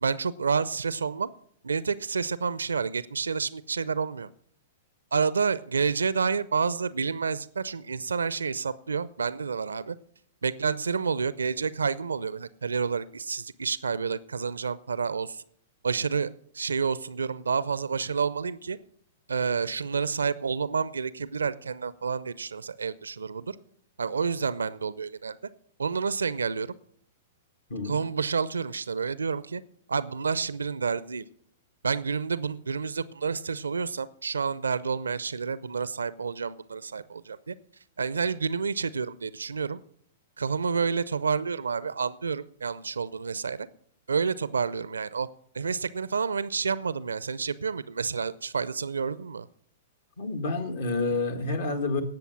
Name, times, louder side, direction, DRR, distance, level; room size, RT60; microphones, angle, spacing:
voice 1, 0.0-1.3 1.6-4.3 5.1-10.0 10.4-15.4 15.8-18.8 19.3-23.6 24.0-25.4 25.8-26.7 27.8-29.6 29.9-31.2 31.8-37.6 38.0-39.8 40.4-43.7 44.1-45.3 45.5-49.5, right 5 dB, 75° right, 17 dB, 0.5 m, -29 dB
voice 2, 50.2-52.0, left 3 dB, 60° left, 8 dB, 1.7 m, -29 dB
18.0 x 7.0 x 5.9 m, 0.66 s
figure-of-eight pair, 105°, 0 cm